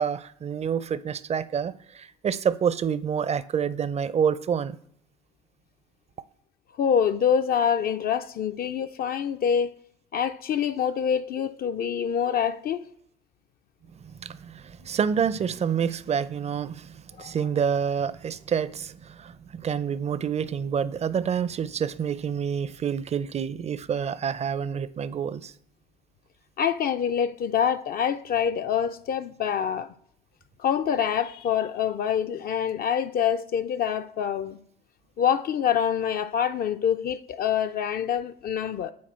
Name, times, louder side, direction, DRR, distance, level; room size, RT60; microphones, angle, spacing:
voice 1, 0.0-4.8 14.0-25.5, right 7 dB, 30° right, 0.5 m, -28 dB
voice 2, 6.8-9.7 10.1-12.9 17.2-17.3 26.6-29.9 30.6-34.6 35.2-38.9, left 8 dB, 45° left, 0.4 m, -26 dB
8.5 x 4.3 x 4.2 m
hypercardioid pair, 60°, 21 cm